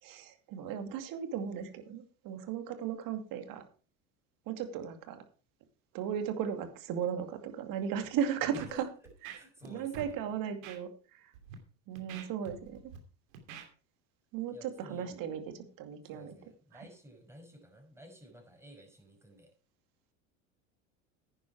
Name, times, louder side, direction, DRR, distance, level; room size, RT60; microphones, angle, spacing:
voice 1, 0.0-3.6 4.5-5.2 5.9-8.9 9.2-9.3 9.7-11.3 11.9-12.9 14.3-16.3, right 8 dB, 60° right, 8 dB, 2.4 m, -36 dB
voice 2, 8.5-8.8 9.3-10.2 14.5-15.2 16.1-19.5, left 1 dB, 5° right, 2 dB, 5.4 m, -53 dB
Scratching (performance technique), 8.5-8.7 9.1-9.7 9.9-10.1 10.6-10.8 11.3-11.5 12.0-13.0 13.3-13.7, right 7 dB, 80° right, 2.8 m, -46 dB
10.5 x 10.0 x 4.6 m, 0.37 s
hypercardioid pair, 90°, 39 cm